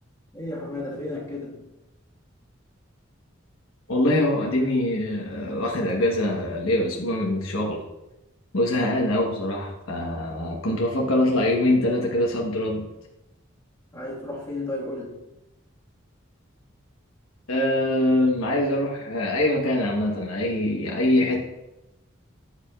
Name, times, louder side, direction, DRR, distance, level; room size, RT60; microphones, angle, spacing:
voice 1, 0.3-1.7 13.9-15.2, left 2 dB, 15° left, -6 dB, 1.7 m, -33 dB
voice 2, 3.9-7.8 8.5-12.9 17.5-21.4, left 1 dB, 85° left, -2 dB, 1.2 m, -23 dB
13.5 x 5.0 x 2.4 m, 0.96 s
head